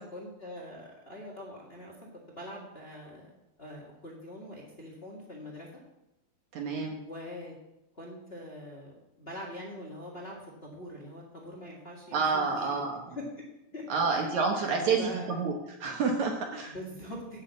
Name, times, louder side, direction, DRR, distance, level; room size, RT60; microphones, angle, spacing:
voice 1, 0.0-1.9 2.3-3.3 3.6-5.7 7.0-7.5 7.9-12.8 13.1-13.4 13.7-15.4 16.6-17.4, left 1 dB, 40° left, -1 dB, 0.8 m, -43 dB
voice 2, 6.5-7.0 12.1-13.0 13.9-15.0 15.3-15.5 15.8-16.7, right 5 dB, 65° right, 2 dB, 2.0 m, -28 dB
9.8 x 6.5 x 8.2 m, 0.92 s
omnidirectional pair, 4.4 m